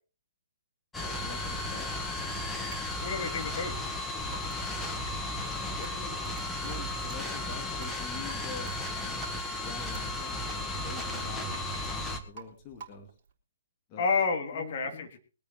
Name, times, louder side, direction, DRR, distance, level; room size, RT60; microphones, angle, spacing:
sound 1, 0.9-12.2, left 2 dB, 5° left, 1.7 m, -34 dB
voice 1, 1.0-1.9 5.8-9.2 9.5-13.1 13.9-14.1 14.5-15.1, left 5 dB, 30° left, 3 dB, 2.6 m, -46 dB
Drip, 2.3-13.3, right 6 dB, 40° right, 3.7 m, -50 dB
voice 2, 3.0-3.8 14.0-15.2, left 4 dB, 45° left, 3 dB, 3.0 m, -30 dB
22.0 x 8.7 x 4.1 m, 0.35 s
figure-of-eight pair, 125°, 0 cm